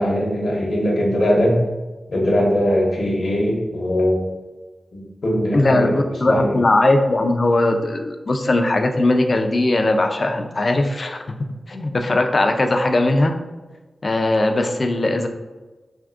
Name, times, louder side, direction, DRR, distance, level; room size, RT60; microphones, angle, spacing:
voice 1, 0.0-1.6 2.1-4.2 4.9-6.0 6.3-6.6, equal, 70° left, -2 dB, 0.7 m, -20 dB
voice 2, 5.5-11.4 11.7-13.3 14.0-15.3, left 2 dB, 45° left, 6 dB, 0.3 m, -19 dB
3.5 x 2.6 x 2.4 m, 1.2 s
wide cardioid pair, 80°, 0 cm